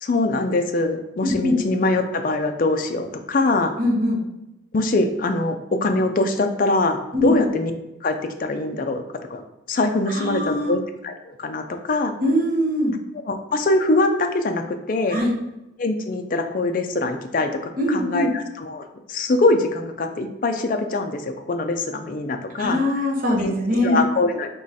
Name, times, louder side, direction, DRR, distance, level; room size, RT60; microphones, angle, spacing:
voice 1, 0.0-3.7 4.7-5.6 5.8-7.7 8.0-8.1 8.4-9.0 9.3-9.4 9.7-12.1 13.3-15.2 15.8-17.5 17.9-21.2 21.5-22.8 23.4-23.5 23.8-24.5, left 2 dB, 45° left, 6 dB, 0.4 m, -23 dB
voice 2, 1.2-1.6 3.8-4.2 7.1-7.3 10.1-10.7 12.2-13.0 15.1-15.3 17.8-18.3 22.5-24.0, left 1 dB, 45° right, -1 dB, 0.9 m, -22 dB
3.7 x 3.1 x 4.1 m, 0.94 s
head